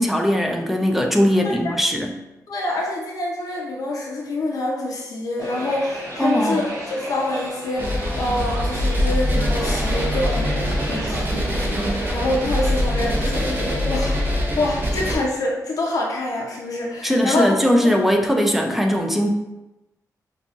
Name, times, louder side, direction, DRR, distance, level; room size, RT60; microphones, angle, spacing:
voice 1, 0.0-2.1 6.2-6.6 17.0-19.3, equal, 5° right, 2 dB, 0.4 m, -19 dB
voice 2, 2.5-14.2 14.6-17.5 17.8-18.0, left 2 dB, 65° left, -2 dB, 0.6 m, -26 dB
sound 1, 5.4-13.3, equal, 75° right, 1.1 m, -33 dB
sound 2, 7.8-15.1, equal, 30° right, 0.7 m, -23 dB
5.5 x 2.3 x 2.4 m, 0.98 s
wide cardioid pair, 120°, 7 cm